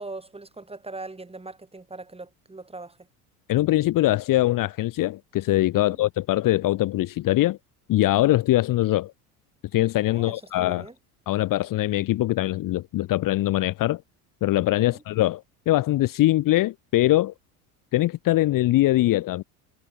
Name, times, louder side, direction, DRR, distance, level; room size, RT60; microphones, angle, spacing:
voice 1, 0.0-3.0 5.7-6.0 10.1-10.9 14.8-15.0, right 3 dB, 15° right, 5.6 m, -40 dB
voice 2, 3.5-7.6 7.9-9.1 9.7-10.9 11.3-14.0 14.4-17.3 17.9-19.4, left 16 dB, 45° left, 1.0 m, -22 dB
hypercardioid pair, 85°, 44 cm